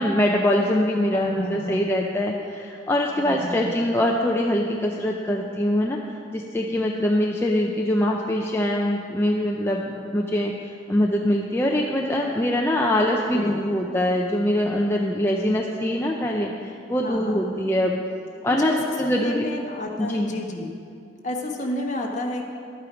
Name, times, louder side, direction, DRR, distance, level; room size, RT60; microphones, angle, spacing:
voice 1, 0.0-6.0 6.3-16.5 16.9-18.0 18.4-19.5 20.0-20.3, left 1 dB, 15° left, -1 dB, 0.5 m, -23 dB
voice 2, 1.1-1.9 3.2-3.9 13.3-13.6 17.0-17.5 18.6-20.7 21.2-22.4, left 2 dB, 40° left, 0 dB, 1.3 m, -31 dB
11.0 x 8.8 x 5.0 m, 2.4 s
head